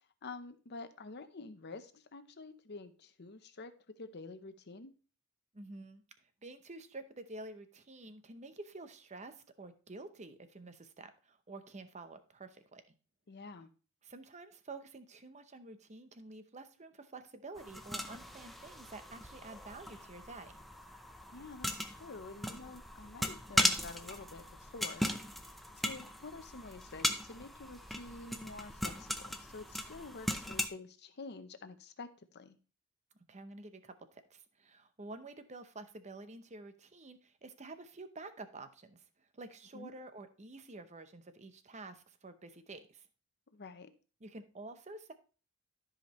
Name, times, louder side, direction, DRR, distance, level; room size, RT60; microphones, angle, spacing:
voice 1, 0.2-4.9 13.3-13.7 21.3-25.4 25.8-32.6 39.7-39.9 43.5-43.9, left 3 dB, 50° left, 10 dB, 0.8 m, -48 dB
voice 2, 5.5-6.0 6.4-12.8 14.0-20.5 33.3-39.0 39.3-43.1 44.2-45.1, right 2 dB, 30° right, 10 dB, 0.8 m, -49 dB
sound 1, 17.6-30.7, left 1 dB, ahead, 0.6 m, -38 dB
13.0 x 5.1 x 3.1 m, 0.37 s
head